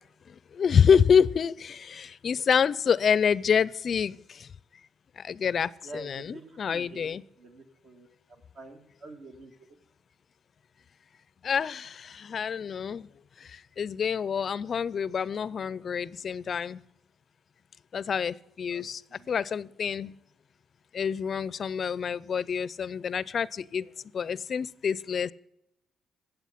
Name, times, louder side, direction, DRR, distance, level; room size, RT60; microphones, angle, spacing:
voice 1, 0.5-4.5 5.2-7.2 11.4-13.1 13.4-16.8 17.9-19.0 19.3-20.1 20.9-23.9 24.1-25.3, left 7 dB, 50° left, 0.4 m, -27 dB
voice 2, 5.8-8.1 8.5-9.5 18.7-18.8 19.1-19.3, right 2 dB, 65° right, 1.9 m, -46 dB
14.5 x 7.8 x 5.7 m
cardioid pair, 90°, 0 cm